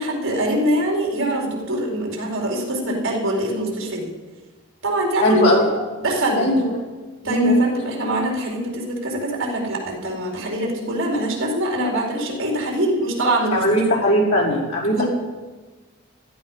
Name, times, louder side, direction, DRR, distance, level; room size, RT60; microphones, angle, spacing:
voice 1, 0.0-4.1 4.8-6.5 7.2-13.6 14.9-15.1, right 1 dB, 60° right, -1 dB, 4.4 m, -23 dB
voice 2, 5.2-5.7 6.4-6.7 7.2-7.6 13.5-15.1, equal, 80° left, -3 dB, 5.3 m, -19 dB
17.0 x 13.5 x 5.8 m, 1.3 s
head